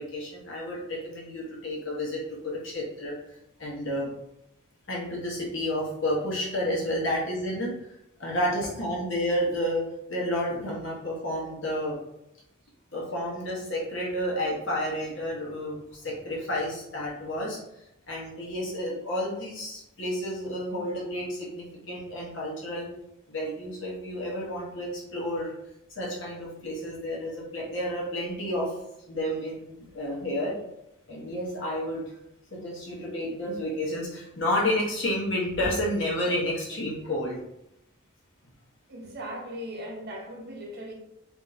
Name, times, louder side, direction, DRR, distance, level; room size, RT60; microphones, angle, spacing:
voice 1, 0.0-3.2 3.6-4.1 4.9-7.7 8.2-9.8 10.1-11.9 12.9-17.6 18.1-22.9 23.3-25.5 25.9-28.7 29.1-30.6 31.1-32.1 32.5-37.4, left 1 dB, 55° left, -4 dB, 1.1 m, -30 dB
voice 2, 38.9-40.9, equal, 45° right, -1 dB, 0.7 m, -38 dB
3.5 x 2.7 x 2.7 m, 0.84 s
head